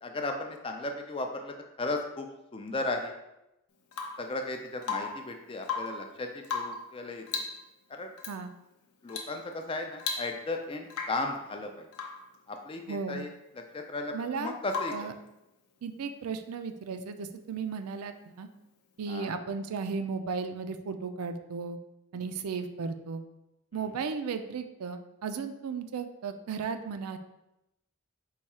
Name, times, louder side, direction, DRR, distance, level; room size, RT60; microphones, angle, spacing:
voice 1, 0.0-2.3 2.5-3.1 4.2-7.2 7.9-8.1 9.0-11.9 12.5-13.3 13.5-15.1 19.1-19.3 22.1-22.3 23.7-23.9, left 2 dB, 25° left, 4 dB, 0.3 m, -35 dB
Rain / Water tap faucet / Drip, 3.9-4.3 4.8-5.3 5.6-6.1 6.4-6.9 7.3-7.6 8.2-8.4 9.1-9.4 9.7-9.8 10.0-10.6 10.9-11.3 11.9-12.3 14.7-15.1 17.0-17.1, left 5 dB, 85° left, 0.6 m, -36 dB
voice 2, 12.9-13.3 14.1-14.6 14.9-15.1 15.8-18.5 19.0-21.8 22.1-23.2 23.7-27.2, right 5 dB, 85° right, 9 dB, 0.4 m, -35 dB
4.6 x 2.3 x 4.2 m, 0.92 s
head